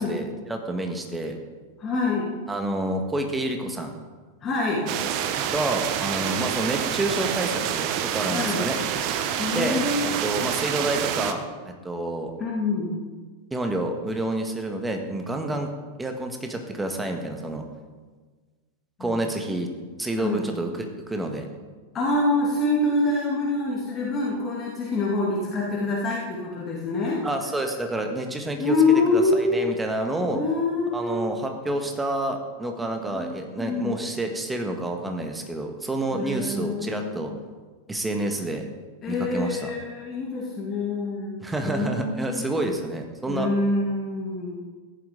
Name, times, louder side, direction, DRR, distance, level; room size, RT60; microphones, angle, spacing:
voice 1, 0.0-1.4 2.5-3.9 5.5-8.8 9.5-12.3 13.5-15.7 16.0-17.6 19.0-21.5 27.2-30.4 30.9-37.3 37.9-38.7 39.1-39.7 41.4-43.5, right 1 dB, 10° right, 4 dB, 1.6 m, -29 dB
voice 2, 1.8-2.4 4.4-4.9 8.3-8.7 9.4-10.1 12.4-13.0 19.0-19.2 20.2-20.5 21.9-27.2 28.6-29.7 30.3-31.2 33.1-34.0 36.1-37.2 39.0-42.5 43.3-44.6, left 2 dB, 25° left, -4 dB, 2.4 m, -26 dB
sound 1, 4.9-11.3, right 9 dB, 45° right, 0.9 m, -27 dB
14.5 x 11.0 x 3.9 m, 1.4 s
figure-of-eight pair, 90°, 0 cm